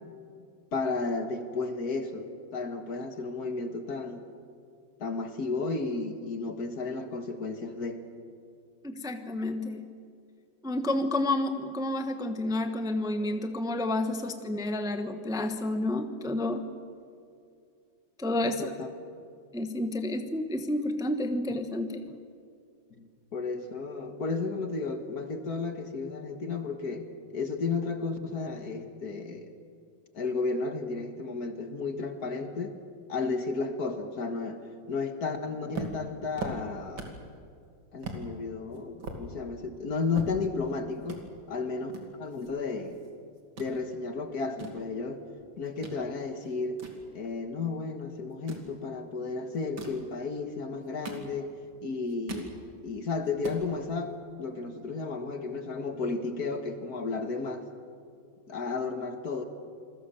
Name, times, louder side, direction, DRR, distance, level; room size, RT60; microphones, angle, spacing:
voice 1, 0.7-4.3 5.0-8.0 14.4-14.5 18.4-18.9 23.0-27.1 27.3-29.5 30.1-32.8 33.1-37.1 37.9-41.9 42.2-43.0 43.6-45.2 45.6-46.8 47.1-52.5 52.8-57.7 58.5-59.4, left 4 dB, 55° left, 6 dB, 2.0 m, -33 dB
voice 2, 8.8-9.9 10.6-16.7 18.2-18.7 19.5-22.0, left 1 dB, 5° right, 7 dB, 0.9 m, -30 dB
sound 1, 35.7-37.3 37.6-37.7 38.0-38.2 38.7-40.7 41.0-41.2 41.9-43.1 43.4-43.7 44.3-46.0 46.4-47.7 48.3-48.7 49.5-50.0 50.7-51.7 52.0-52.5 52.9-53.0 53.2-53.6, right 2 dB, 90° right, 3.3 m, -40 dB
27.5 x 21.0 x 7.0 m, 2.3 s
omnidirectional pair, 2.0 m